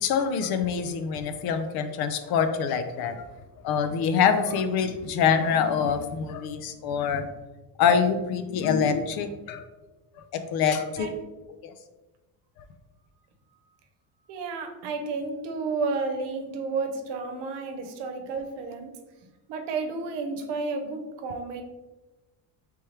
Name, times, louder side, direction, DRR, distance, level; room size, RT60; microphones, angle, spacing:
voice 1, 0.0-3.2 3.6-7.3 7.8-9.7 10.2-10.3 10.5-11.1 11.6-11.7 12.6-12.7, left 7 dB, 60° left, 9 dB, 0.6 m, -25 dB
voice 2, 14.3-18.9 19.5-21.6, right 4 dB, 70° right, 5 dB, 0.9 m, -31 dB
4.4 x 3.5 x 3.1 m, 1.1 s
cardioid pair, 140°, 43 cm